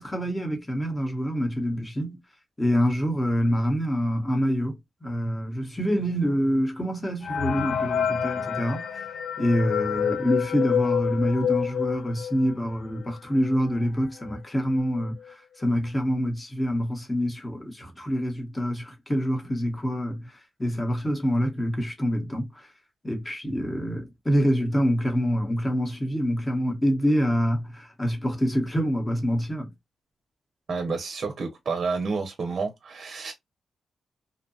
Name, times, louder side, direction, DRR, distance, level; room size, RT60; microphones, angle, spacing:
voice 1, 0.0-2.2 2.6-9.0 9.4-15.1 15.6-20.3 20.6-22.6 23.0-29.7, equal, 15° left, 0.9 m, -26 dB
sound 1, 7.2-12.7 13.1-13.2 13.4-13.6 14.3-14.4 14.8-15.1, left 8 dB, 85° left, 0.3 m, -28 dB
voice 2, 30.7-33.3, right 4 dB, 55° right, 0.6 m, -30 dB
2.7 x 2.2 x 2.6 m
cardioid pair, 80°, 0 cm